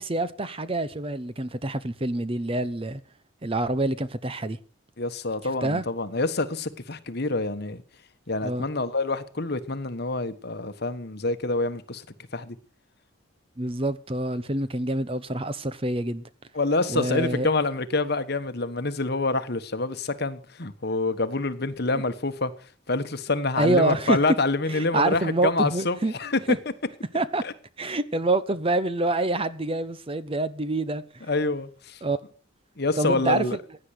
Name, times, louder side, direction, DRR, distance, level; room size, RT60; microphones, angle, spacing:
voice 1, 0.0-3.0 3.4-4.6 5.6-5.8 8.4-8.6 13.6-16.2 16.9-17.5 21.9-22.0 23.6-24.2 24.7-26.1 26.5-26.6 27.1-27.4 27.8-31.3 32.0-32.2 33.0-33.4, right 2 dB, 30° right, 0.9 m, -26 dB
voice 2, 5.0-7.8 8.3-12.1 12.3-12.6 16.5-22.5 22.9-26.4 27.4-27.5 31.3-32.0 32.8-33.6, left 3 dB, 55° left, 1.3 m, -27 dB
16.0 x 10.0 x 6.6 m
head